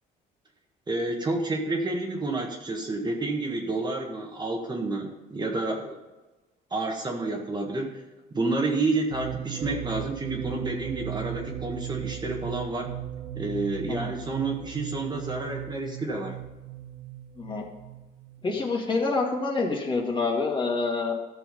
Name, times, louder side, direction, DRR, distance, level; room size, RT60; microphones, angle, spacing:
voice 1, 0.9-6.0 6.7-8.0 8.3-12.9 13.3-16.3, right 2 dB, 25° right, 1 dB, 1.7 m, -29 dB
sound 1, 9.1-18.7, right 12 dB, 85° right, 0.9 m, -37 dB
voice 2, 18.4-21.1, left 3 dB, 30° left, 0 dB, 2.4 m, -27 dB
13.5 x 6.3 x 5.4 m, 1.1 s
cardioid pair, 110°, 17 cm